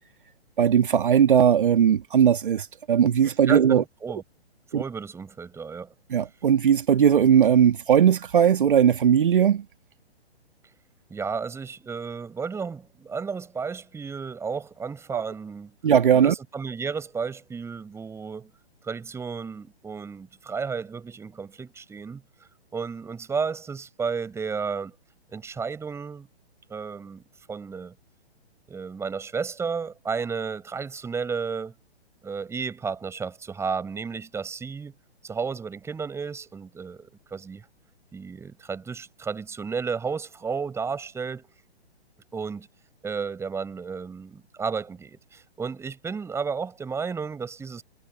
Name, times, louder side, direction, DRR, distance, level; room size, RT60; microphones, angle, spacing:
voice 1, 0.6-3.8 4.7-4.8 6.1-9.6 15.1-15.2 15.8-16.3, right 8 dB, 55° right, 2.1 m, -19 dB
voice 2, 3.5-4.2 4.7-5.9 11.1-15.8 16.1-18.5 18.8-22.2 22.7-24.9 25.3-26.3 26.7-27.2 27.5-27.9 28.7-31.7 32.2-34.9 35.2-37.6 38.1-41.5 42.3-42.7 43.0-47.8, right 5 dB, 10° right, 7.5 m, -32 dB
figure-of-eight pair, 125°, 32 cm